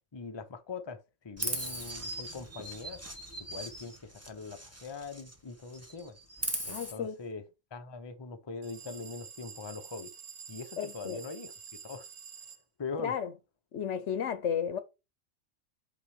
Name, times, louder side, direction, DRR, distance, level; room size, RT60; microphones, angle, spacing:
voice 1, 0.1-3.0 3.4-6.2 6.6-7.4 7.7-10.1 10.5-11.5 11.8-12.1 12.8-13.1, left 4 dB, 25° left, 0.6 m, -42 dB
Chirp tweet, 1.4-5.4 5.7-6.9, right 1 dB, 15° right, 1.2 m, -39 dB
voice 2, 6.7-7.2 10.8-11.2 13.0-13.3 13.7-14.8, left 8 dB, 70° left, 1.1 m, -33 dB
sound 1, 8.6-12.6, right 7 dB, 65° right, 1.2 m, -48 dB
8.5 x 3.2 x 4.8 m
omnidirectional pair, 1.2 m